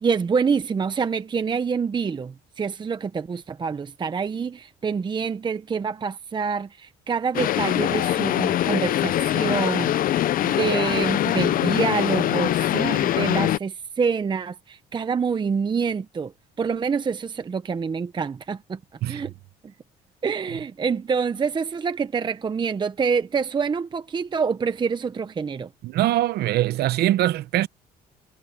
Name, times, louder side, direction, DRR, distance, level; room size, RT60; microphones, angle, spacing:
voice 1, 0.0-9.9 10.4-16.3 16.6-18.8 19.1-19.3 20.2-25.7, right 5 dB, 25° right, 0.8 m, -26 dB
sound 1, 7.3-13.6, left 13 dB, 55° left, 0.6 m, -23 dB
voice 2, 25.8-27.7, right 14 dB, 70° right, 0.8 m, -22 dB
cardioid pair, 110°, 17 cm